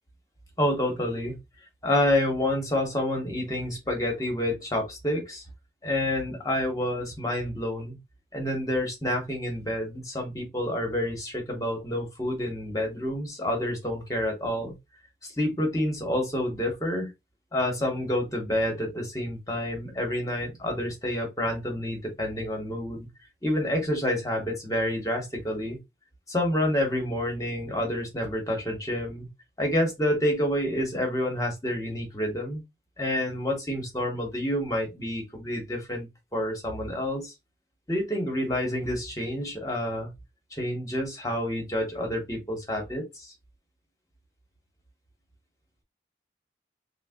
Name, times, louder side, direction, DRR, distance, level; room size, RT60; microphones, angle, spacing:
voice 1, 0.6-1.3 1.8-5.4 5.8-8.0 8.3-14.7 15.2-17.1 17.5-23.1 23.4-25.8 26.3-29.3 29.6-32.6 33.0-37.3 37.9-40.1 40.5-43.3, left 1 dB, 20° left, 1.1 m, -28 dB
3.3 x 2.2 x 3.5 m
head